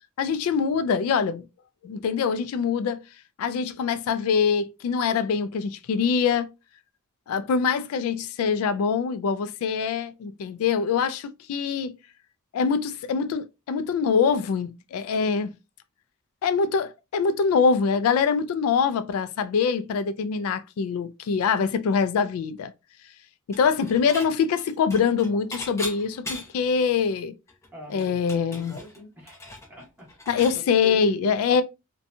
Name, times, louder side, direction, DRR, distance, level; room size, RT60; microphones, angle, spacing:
voice 1, 0.2-1.5 1.8-3.0 3.4-6.5 7.3-11.9 12.5-15.5 16.4-22.7 23.5-27.3 27.9-28.7 30.3-31.6, left 6 dB, 80° left, 0.3 m, -24 dB
Dishes pots and pans / Chink clink, 23.5-24.3 24.6-26.7 27.1-27.2 27.5-30.6, left 2 dB, 15° left, 0.7 m, -39 dB
voice 2, 27.7-29.4 29.7-31.6, equal, 10° right, 1.2 m, -42 dB
2.6 x 2.2 x 2.5 m
head